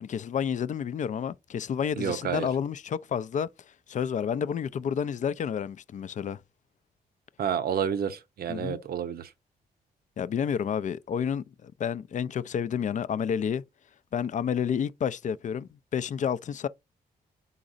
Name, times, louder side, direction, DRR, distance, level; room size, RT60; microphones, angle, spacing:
voice 1, 0.0-3.5 3.9-6.4 8.5-8.8 10.2-13.6 14.1-16.7, left 8 dB, 45° left, 0.4 m, -30 dB
voice 2, 2.0-2.5 7.4-9.3, right 8 dB, 65° right, 0.6 m, -30 dB
3.9 x 3.9 x 2.5 m
supercardioid pair, 55°, 17 cm